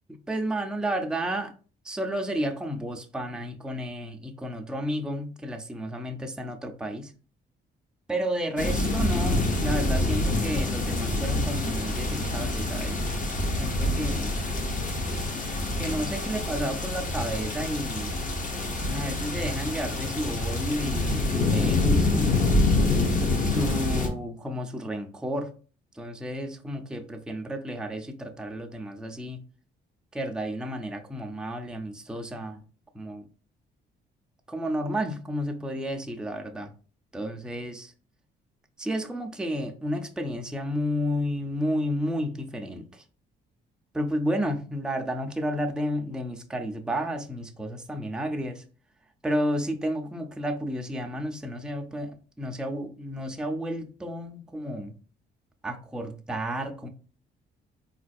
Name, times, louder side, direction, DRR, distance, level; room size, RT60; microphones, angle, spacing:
voice 1, 0.3-1.5 1.8-7.1 8.1-13.1 13.6-14.3 15.8-18.2 18.9-22.4 23.4-25.5 25.9-29.4 30.1-32.6 32.9-33.3 34.5-36.7 37.1-37.9 38.8-43.0 43.9-48.6 49.2-54.9 55.6-56.9, equal, 5° right, 0.4 m, -31 dB
sound 1, 8.6-24.1, left 2 dB, 40° left, 0.7 m, -26 dB
3.8 x 2.5 x 2.3 m
cardioid pair, 90°, 20 cm